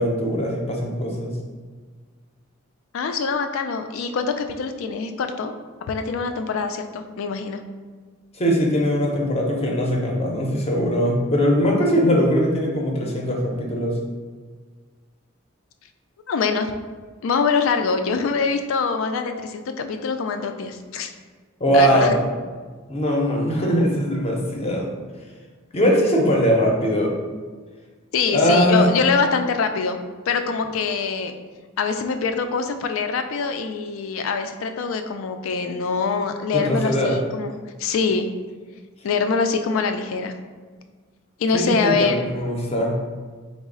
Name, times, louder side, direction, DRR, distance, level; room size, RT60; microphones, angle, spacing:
voice 1, 0.0-1.4 8.3-14.0 21.6-22.3 22.9-24.9 25.7-27.1 28.3-28.9 36.5-37.2 41.5-43.0, equal, 30° left, -1 dB, 0.6 m, -21 dB
voice 2, 2.9-5.5 5.9-7.6 16.3-16.7 17.2-21.1 21.7-22.1 28.1-30.0 30.3-31.3 31.8-37.5 37.8-38.3 39.0-40.3 41.4-42.2, left 5 dB, 75° left, 7 dB, 0.3 m, -24 dB
3.9 x 2.0 x 3.7 m, 1.5 s
head